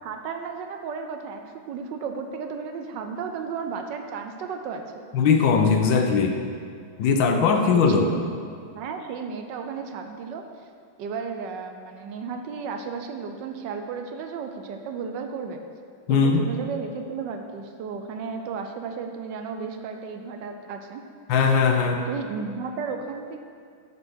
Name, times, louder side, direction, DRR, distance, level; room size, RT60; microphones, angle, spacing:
voice 1, 0.0-4.8 8.0-8.3 8.7-10.4 11.0-15.6 16.1-21.0 22.1-23.4, right 5 dB, 70° right, 5 dB, 1.2 m, -34 dB
voice 2, 5.1-6.4 7.0-8.1 16.1-16.4 21.3-22.0, left 5 dB, 70° left, 4 dB, 1.5 m, -20 dB
8.0 x 5.7 x 6.2 m, 2.3 s
omnidirectional pair, 2.3 m